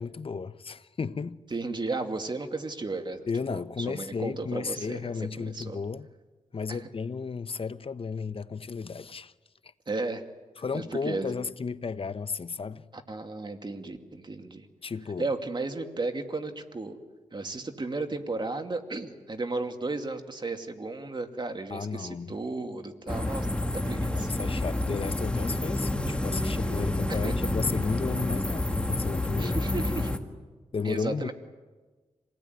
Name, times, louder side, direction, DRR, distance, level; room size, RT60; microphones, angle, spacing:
voice 1, 0.0-1.4 3.3-6.1 6.5-9.3 10.6-12.8 14.8-15.3 21.7-22.3 24.1-29.6 30.7-31.3, left 5 dB, 45° left, 0.9 m, -33 dB
voice 2, 1.5-5.1 5.4-5.8 6.7-6.9 9.9-10.2 10.7-11.3 12.9-14.7 15.2-17.0 17.3-23.5 23.7-24.3 27.1-27.3 29.4-30.1 30.8-31.3, right 3 dB, 35° right, 2.5 m, -34 dB
sound 1, 23.1-30.2, left 1 dB, 10° left, 2.0 m, -29 dB
27.0 x 19.0 x 9.5 m
cardioid pair, 70°, 13 cm